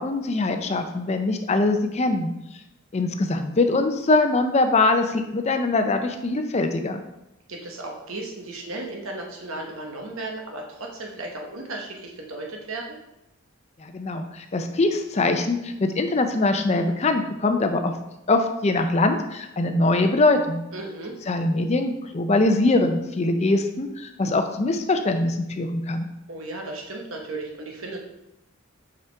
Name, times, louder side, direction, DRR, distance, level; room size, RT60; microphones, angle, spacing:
voice 1, 0.0-2.3 2.9-7.0 13.8-17.9 18.3-20.6 21.3-26.1, left 2 dB, 30° left, 6 dB, 0.5 m, -22 dB
voice 2, 7.5-13.0 20.7-21.1 26.3-28.0, right 2 dB, 80° right, 1 dB, 1.2 m, -35 dB
5.4 x 5.0 x 3.4 m, 0.90 s
head